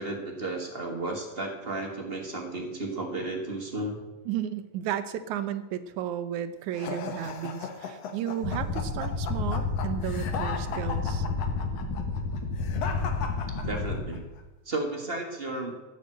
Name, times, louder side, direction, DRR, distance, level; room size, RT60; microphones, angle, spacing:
voice 1, 0.0-4.0 13.6-14.2 14.6-15.7, right 2 dB, 35° right, 2 dB, 0.9 m, -33 dB
voice 2, 4.3-11.3, right 10 dB, 75° right, 11 dB, 2.1 m, -33 dB
sound 1, 6.7-14.2, left 6 dB, 60° left, 2.1 m, -37 dB
sound 2, 8.4-14.0, left 4 dB, 40° left, 2.3 m, -30 dB
14.5 x 6.6 x 7.7 m, 1.1 s
omnidirectional pair, 3.6 m